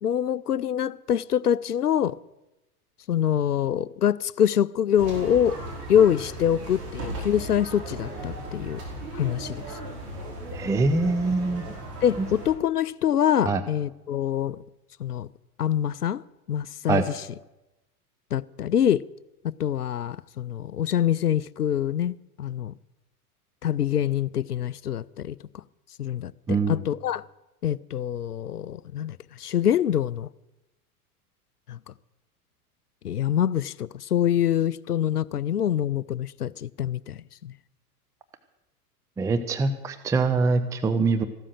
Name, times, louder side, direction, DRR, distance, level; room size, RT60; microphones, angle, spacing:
voice 1, 0.0-2.2 3.1-5.6 5.9-8.8 9.1-9.6 12.0-14.6 15.0-15.3 15.6-16.2 16.5-17.2 18.3-19.0 19.6-22.7 23.6-25.4 26.0-27.2 27.6-30.3 31.7-31.9 33.0-37.5, left 10 dB, 85° left, 0.5 m, -25 dB
sound 1, 5.0-12.5, right 1 dB, 45° right, 4.9 m, -37 dB
voice 2, 10.5-11.7 13.4-13.6 16.9-17.0 26.5-26.8 39.2-41.2, right 3 dB, 5° right, 0.5 m, -23 dB
15.0 x 12.5 x 6.5 m
figure-of-eight pair, 90°, 45 cm